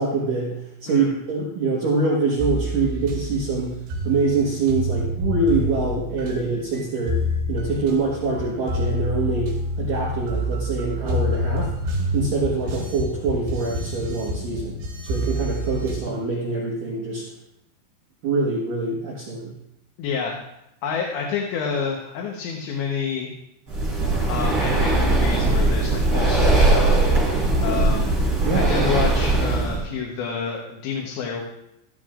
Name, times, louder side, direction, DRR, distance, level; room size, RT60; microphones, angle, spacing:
voice 1, 0.0-7.2 7.5-11.7 12.1-17.3 18.2-19.5 28.4-28.8, right 3 dB, 60° right, -3 dB, 2.6 m, -25 dB
sound 1, 2.4-16.0, equal, 85° right, 5.2 m, -28 dB
voice 2, 20.0-20.4 20.8-23.3 24.3-26.9 27.3-28.1 28.5-31.4, left 6 dB, 75° left, 0 dB, 3.3 m, -28 dB
Breathing, 23.7-29.8, right 2 dB, 30° right, 5.9 m, -20 dB
15.0 x 14.5 x 2.5 m, 0.84 s
omnidirectional pair, 5.3 m